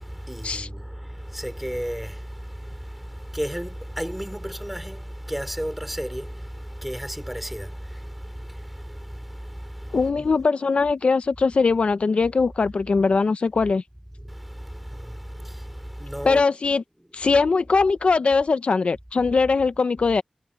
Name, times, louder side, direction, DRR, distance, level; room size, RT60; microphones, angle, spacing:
voice 1, 0.0-10.3 14.2-16.5 17.2-17.3, equal, 5° right, 3.2 m, -34 dB
voice 2, 9.9-13.8 16.2-16.8 17.1-20.2, left 4 dB, 65° left, 0.6 m, -21 dB
wide cardioid pair, 105°, 2 cm